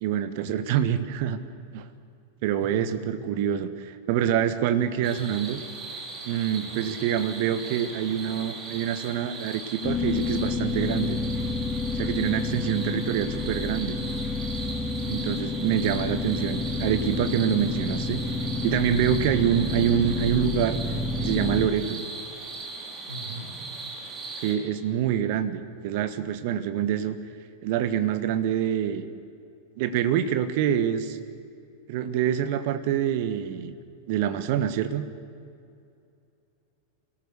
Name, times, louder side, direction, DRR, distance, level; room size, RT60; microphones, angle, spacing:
voice 1, 0.0-1.4 1.7-1.8 2.4-5.6 6.2-11.2 11.9-14.0 15.0-18.2 18.6-20.8 21.2-22.0 24.4-27.2 27.6-29.1 29.8-31.2 31.9-33.7 34.1-35.1, right 9 dB, 50° right, 11 dB, 1.3 m, -26 dB
voice 2, 2.6-3.1 4.9-5.4 6.6-6.8 15.8-16.2 23.1-23.5, right 1 dB, 85° right, -6 dB, 4.3 m, -41 dB
sound 1, 5.0-24.6, right 3 dB, 25° right, 3.6 m, -39 dB
sound 2, 9.8-21.7, left 3 dB, 15° left, 1.9 m, -29 dB
25.0 x 18.0 x 6.6 m, 2.5 s
figure-of-eight pair, 90°, 0 cm